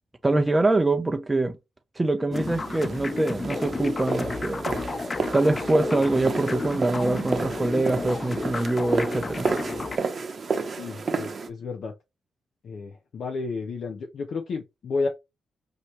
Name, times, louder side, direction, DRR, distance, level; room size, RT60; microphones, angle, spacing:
voice 1, 0.2-1.6 2.0-4.6 5.3-9.5, right 2 dB, 20° right, 0.5 m, -24 dB
sound 1, 2.3-10.0, left 4 dB, 35° left, 0.3 m, -32 dB
sound 2, 2.3-11.5, right 4 dB, 50° right, 0.8 m, -31 dB
voice 2, 10.8-11.9 12.6-15.1, left 4 dB, 65° left, 0.7 m, -31 dB
4.8 x 2.7 x 3.1 m
supercardioid pair, 60°, 0 cm